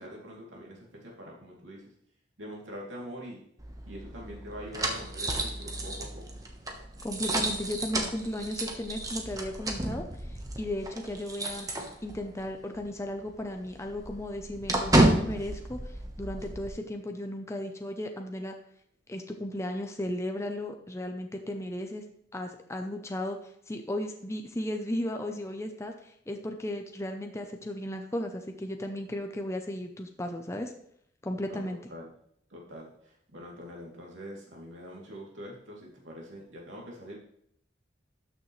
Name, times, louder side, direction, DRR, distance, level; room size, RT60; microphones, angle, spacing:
voice 1, 0.0-1.9 2.4-3.4 3.9-6.2 31.4-32.1 32.5-37.2, equal, 90° right, -2 dB, 2.9 m, -44 dB
sound 1, 3.6-12.4 12.7-12.9 13.2-16.7, right 1 dB, 20° right, 1.2 m, -31 dB
voice 2, 7.0-11.7 12.0-18.6 19.1-22.0 22.3-30.7 31.2-31.8, left 1 dB, 15° left, 4 dB, 0.6 m, -35 dB
12.5 x 6.5 x 3.2 m, 0.70 s
head